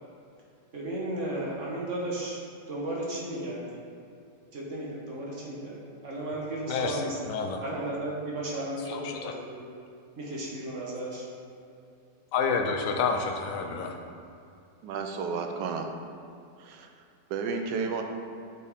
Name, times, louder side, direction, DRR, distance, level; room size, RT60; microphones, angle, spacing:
voice 1, 0.7-2.4 2.7-3.6 4.5-7.3 7.6-9.6 10.2-11.2, right 1 dB, 45° right, -5 dB, 1.4 m, -34 dB
voice 2, 6.7-7.6 8.9-9.3 12.3-13.9, left 5 dB, 60° left, 2 dB, 0.9 m, -29 dB
voice 3, 14.8-15.9 16.6-16.9 17.3-18.0, right 5 dB, 85° right, 5 dB, 1.2 m, -32 dB
8.1 x 4.3 x 3.5 m, 2.5 s
omnidirectional pair, 1.9 m